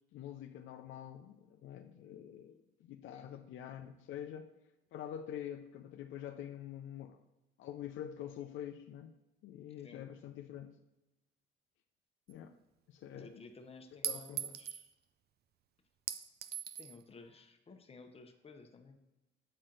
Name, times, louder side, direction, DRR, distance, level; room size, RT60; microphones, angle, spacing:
voice 1, 0.1-4.5 4.9-7.2 7.6-9.2 9.4-10.7 12.3-12.5 12.9-13.4 14.0-14.6, left 10 dB, 75° left, 7 dB, 0.4 m, -46 dB
voice 2, 3.1-3.4 9.8-10.1 13.1-14.9 16.8-19.0, left 3 dB, 30° left, 6 dB, 0.8 m, -55 dB
Chink clink, 12.3-12.4 14.0-14.9 16.1-17.0, right 9 dB, 55° right, 0.4 m, -40 dB
7.5 x 4.3 x 3.8 m, 1.0 s
cardioid pair, 90°, 20 cm